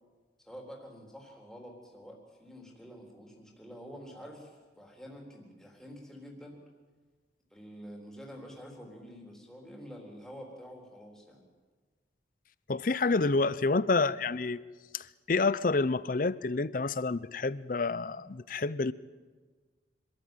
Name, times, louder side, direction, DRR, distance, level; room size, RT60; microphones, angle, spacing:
voice 1, 0.4-6.6 7.5-11.4, equal, 5° left, 3.7 m, -48 dB
voice 2, 12.7-14.6 14.9-18.9, left 3 dB, 50° left, 0.6 m, -28 dB
25.5 x 13.5 x 9.1 m
head